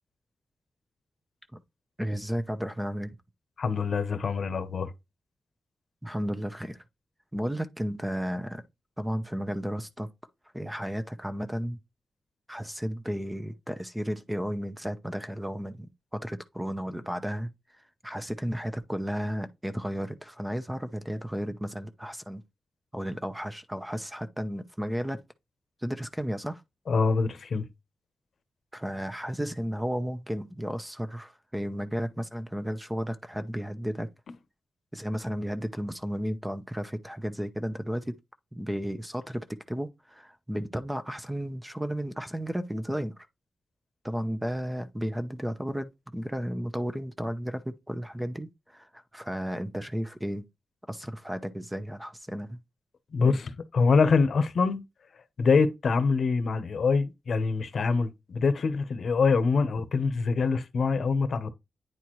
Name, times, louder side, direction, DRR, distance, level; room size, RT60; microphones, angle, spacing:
voice 1, 2.0-3.2 6.0-6.8 7.3-8.6 9.0-10.1 10.5-11.8 12.5-15.9 16.1-17.5 18.0-22.4 22.9-25.2 25.8-26.6 28.7-34.1 34.9-38.2 38.5-43.1 44.0-50.4 50.9-52.6 53.2-53.4, equal, 5° right, 0.7 m, -33 dB
voice 2, 3.6-4.9 26.9-27.7 53.1-54.8 55.4-61.5, left 4 dB, 70° left, 0.9 m, -25 dB
9.4 x 4.3 x 3.1 m
wide cardioid pair, 105°, 0 cm